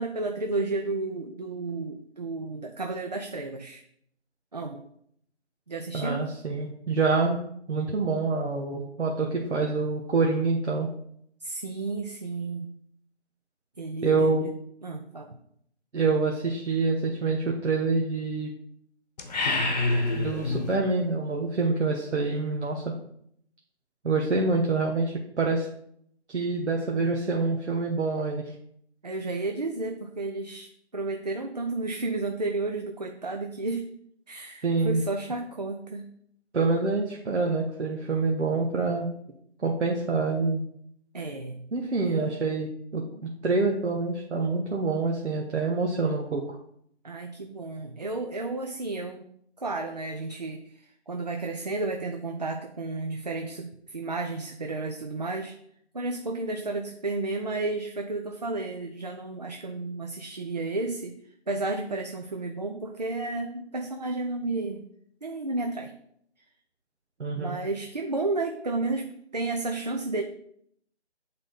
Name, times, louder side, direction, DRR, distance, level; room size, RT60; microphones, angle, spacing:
voice 1, 0.0-3.8 4.5-4.8 5.7-6.2 11.4-12.8 13.8-15.4 19.5-19.7 29.0-33.9 34.3-36.1 41.1-41.7 42.0-42.4 47.0-49.2 49.6-55.6 55.9-61.2 61.5-64.8 65.2-65.9 67.4-70.2, right 3 dB, 40° right, 4 dB, 0.4 m, -32 dB
voice 2, 5.9-7.4 7.7-10.9 14.0-14.4 15.9-18.5 20.2-22.8 24.0-25.7 26.3-28.5 34.6-35.0 36.5-39.1 39.6-40.6 41.7-43.0 43.4-46.6 67.2-67.6, right 3 dB, 85° right, 0 dB, 1.3 m, -26 dB
sound 1, 19.2-20.8, left 2 dB, 40° left, 1.0 m, -26 dB
8.7 x 3.7 x 3.9 m, 0.70 s
figure-of-eight pair, 165°, 34 cm